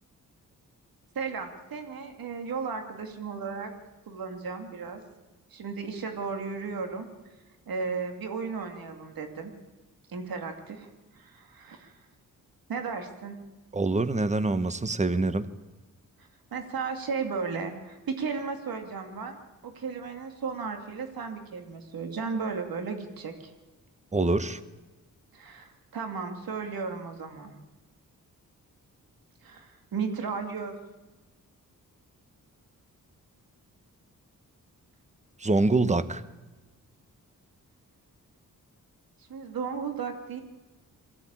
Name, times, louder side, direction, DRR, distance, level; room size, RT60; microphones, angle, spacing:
voice 1, 1.1-3.7 4.1-5.0 5.5-7.1 7.7-9.5 10.1-10.9 11.1-11.9 12.7-13.4 16.5-23.5 25.3-27.5 29.4-30.7 39.3-40.4, right 5 dB, 90° right, 5 dB, 2.5 m, -35 dB
voice 2, 13.7-15.5 24.1-24.6 35.4-36.2, right 2 dB, 20° right, 13 dB, 1.0 m, -25 dB
22.0 x 15.5 x 8.9 m, 1.2 s
wide cardioid pair, 115°, 34 cm